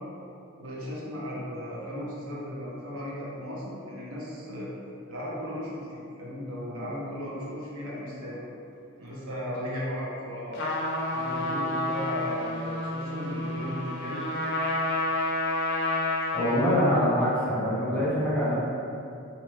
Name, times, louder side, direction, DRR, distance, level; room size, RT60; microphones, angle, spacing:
voice 1, 0.6-4.7 5.1-8.4 9.0-10.7 11.1-14.3, equal, 80° right, -6 dB, 0.7 m, -36 dB
Trumpet, 10.5-16.8, left 2 dB, 55° left, 0.4 m, -29 dB
voice 2, 16.3-18.5, equal, 5° left, -9 dB, 0.5 m, -24 dB
2.5 x 2.3 x 3.1 m, 2.6 s
head